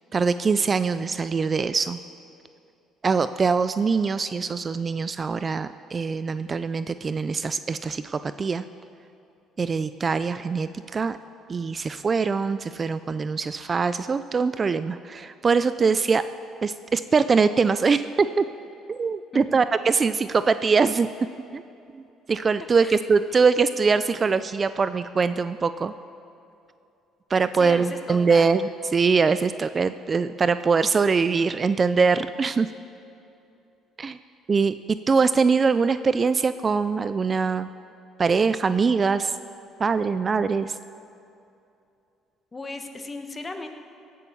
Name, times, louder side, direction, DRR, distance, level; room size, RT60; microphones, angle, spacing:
voice 1, 0.1-2.0 3.0-8.6 9.6-11.2 11.5-16.2 16.6-18.4 18.9-21.1 21.5-21.6 21.9-22.0 22.3-25.9 27.3-28.6 28.9-32.7 34.0-34.2 34.5-37.7 38.2-39.4 39.8-40.8, right 5 dB, 30° right, 12 dB, 0.4 m, -23 dB
voice 2, 27.5-28.5 42.5-43.7, left 2 dB, 25° left, 6 dB, 1.3 m, -36 dB
17.5 x 8.4 x 7.1 m, 2.6 s
cardioid pair, 95°, 0 cm